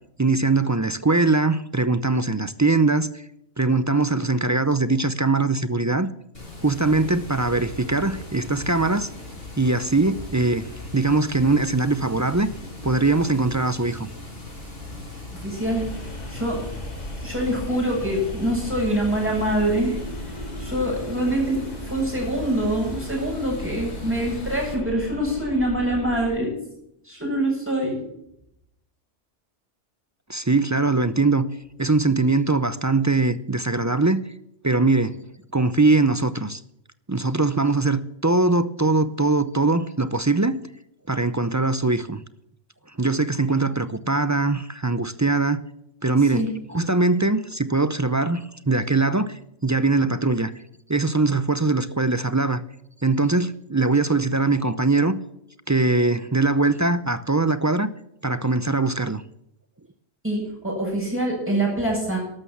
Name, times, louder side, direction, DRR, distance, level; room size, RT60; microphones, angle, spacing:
voice 1, 0.2-3.2 3.6-6.1 6.6-9.1 9.6-12.5 12.8-14.1 30.3-31.5 31.8-34.2 34.6-35.2 35.5-36.6 37.1-40.6 41.1-42.2 43.0-45.6 46.0-50.5 50.9-52.6 53.0-55.2 55.7-57.9 58.2-59.2, right 3 dB, 25° right, 0.4 m, -21 dB
Water, 6.3-24.7, left 2 dB, 55° left, 5.7 m, -39 dB
voice 2, 15.3-15.9 16.3-16.6 17.2-20.0 20.6-26.5 27.0-28.0 46.3-46.5 60.2-62.2, right 1 dB, 10° right, 8.0 m, -25 dB
sound 1, 15.5-26.3, left 1 dB, 35° left, 2.2 m, -36 dB
13.0 x 12.5 x 7.2 m
omnidirectional pair, 1.2 m